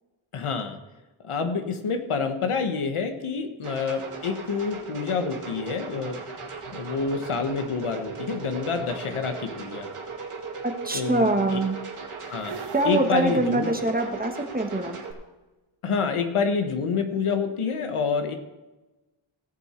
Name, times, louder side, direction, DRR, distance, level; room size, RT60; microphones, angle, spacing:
voice 1, 0.3-0.8 1.2-6.2 6.7-9.9 10.9-11.6 12.3-12.6 12.8-13.7 15.8-18.4, left 5 dB, 80° left, 6 dB, 1.4 m, -27 dB
sound 1, 3.6-15.1, right 4 dB, 85° right, 2.3 m, -38 dB
voice 2, 10.6-11.8 12.7-15.0, right 2 dB, 20° right, 5 dB, 1.2 m, -24 dB
sound 2, 12.4-14.4, right 6 dB, 55° right, 0.9 m, -41 dB
17.0 x 7.5 x 4.4 m, 1.1 s
wide cardioid pair, 130°, 50 cm